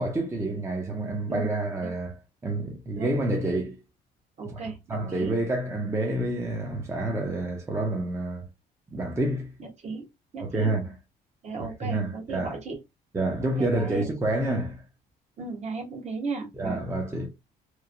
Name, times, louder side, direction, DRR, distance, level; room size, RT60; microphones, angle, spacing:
voice 1, 0.0-2.1 2.4-3.8 4.9-8.5 8.9-9.5 10.4-10.9 11.8-12.6 13.1-14.8 16.6-17.3, right 2 dB, 15° right, 0.6 m, -28 dB
voice 2, 4.4-5.3 9.6-10.1 10.3-10.7 11.4-12.8 13.4-14.1 15.4-16.8, right 4 dB, 40° right, 1.0 m, -36 dB
3.0 x 2.0 x 2.4 m
cardioid pair, 110°, 17 cm